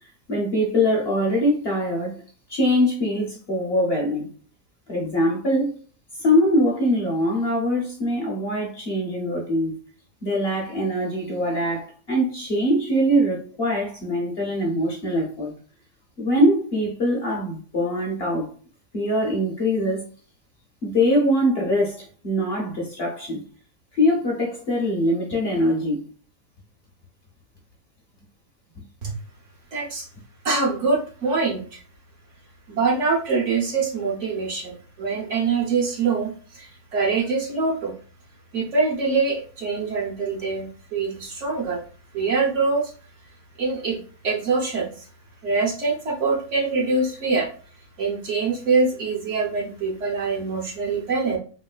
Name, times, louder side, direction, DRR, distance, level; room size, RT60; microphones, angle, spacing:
voice 1, 0.3-2.2 2.5-4.3 4.9-5.8 6.2-9.7 10.2-15.5 16.2-18.5 18.9-20.0 20.8-23.4 23.9-26.0, equal, 50° left, 0.8 m, -23 dB
voice 2, 29.7-30.1 30.4-31.8 32.7-37.9 38.5-41.8 42.1-42.9 43.6-44.0 44.2-44.9 45.4-47.5 48.0-51.4, right 4 dB, 55° right, 1.0 m, -24 dB
3.0 x 3.0 x 2.3 m
omnidirectional pair, 1.6 m